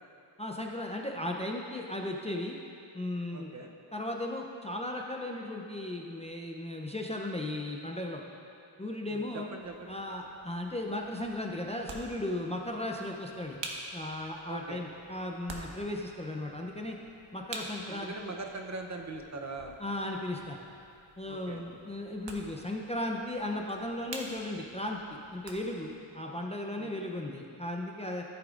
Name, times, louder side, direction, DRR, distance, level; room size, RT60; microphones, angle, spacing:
voice 1, 0.4-2.6 2.9-3.5 3.9-8.2 8.8-9.5 9.9-13.6 13.9-17.0 17.3-18.3 19.8-20.6 21.2-25.0 25.3-28.2, left 1 dB, 15° left, 0 dB, 0.5 m, -36 dB
voice 2, 3.3-3.7 9.1-10.0 14.5-14.8 17.9-19.8 21.2-21.6 26.8-26.9, right 3 dB, 35° right, 3 dB, 0.7 m, -41 dB
sound 1, 9.6-26.0, right 2 dB, 65° right, 1.2 m, -48 dB
14.0 x 8.3 x 2.5 m, 2.5 s
wide cardioid pair, 115°, 48 cm